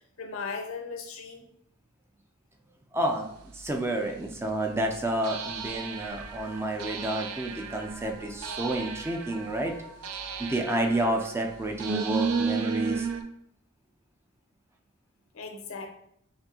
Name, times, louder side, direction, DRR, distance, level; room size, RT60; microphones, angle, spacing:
voice 1, 0.2-1.4 15.3-15.9, left 4 dB, 70° left, 4 dB, 0.7 m, -37 dB
voice 2, 2.9-9.8 10.1-13.1, right 1 dB, 10° right, 2 dB, 0.4 m, -30 dB
sound 1, 3.7-3.8 5.2-13.2, right 5 dB, 85° right, 0.5 m, -34 dB
5.9 x 2.7 x 2.8 m, 0.74 s
head